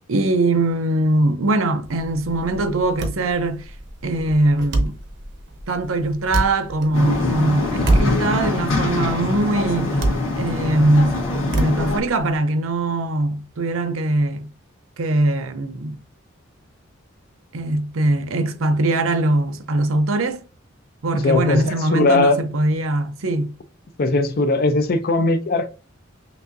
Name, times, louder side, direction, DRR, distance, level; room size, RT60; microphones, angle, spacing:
voice 1, 0.1-3.7 4.0-4.9 5.7-10.0 10.4-14.5 15.0-16.0 17.5-20.4 21.0-23.5, right 2 dB, 85° right, 0.6 m, -21 dB
sound 1, 1.8-12.3, right 2 dB, 60° right, 0.8 m, -27 dB
sound 2, 6.9-12.0, left 2 dB, 75° left, 1.7 m, -23 dB
voice 2, 21.1-22.4 24.0-25.7, left 2 dB, 50° left, 0.5 m, -19 dB
6.0 x 2.6 x 2.6 m
head